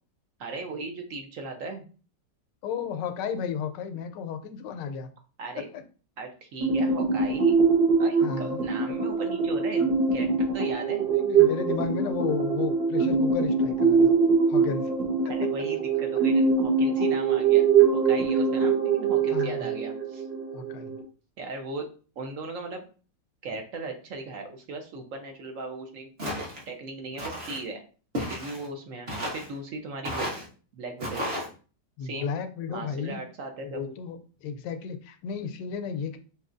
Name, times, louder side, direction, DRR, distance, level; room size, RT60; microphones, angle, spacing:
voice 1, 0.4-1.8 5.4-5.7 6.2-7.6 8.0-11.4 15.3-17.7 17.9-20.2 21.4-21.8 22.2-22.8 23.4-27.8 28.3-30.3 30.7-31.2 32.0-32.3 32.7-33.9, right 3 dB, 60° right, 4 dB, 0.9 m, -38 dB
voice 2, 2.6-5.1 5.6-5.8 8.2-8.6 11.1-14.1 14.5-14.9 18.3-18.4 19.3-19.7 20.5-20.9 32.0-33.2 33.7-36.2, left 7 dB, 80° left, 8 dB, 1.2 m, -33 dB
sound 1, 6.6-21.0, right 5 dB, 85° right, 1.7 m, -23 dB
Walk footsteps, 26.2-26.6 27.2-27.6 28.1-28.7 29.1-29.5 30.0-30.5 31.0-31.5, equal, 40° right, 1.2 m, -33 dB
5.2 x 2.9 x 2.5 m, 0.38 s
omnidirectional pair, 1.9 m